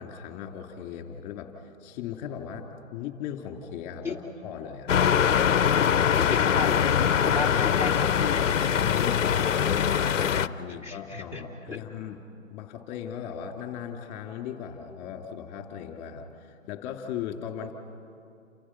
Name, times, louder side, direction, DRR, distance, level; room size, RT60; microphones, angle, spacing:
voice 1, 0.0-1.5 1.8-2.6 2.9-4.9 8.8-12.2 12.5-17.7, left 8 dB, 20° left, 4 dB, 2.9 m, -38 dB
sound 1, 4.9-10.5, left 8 dB, 65° left, 0.8 m, -23 dB
voice 2, 6.1-8.5 10.7-11.4 11.7-11.8, left 3 dB, 5° right, 0 dB, 2.5 m, -35 dB
29.0 x 28.5 x 6.1 m, 2.4 s
figure-of-eight pair, 135°, 40 cm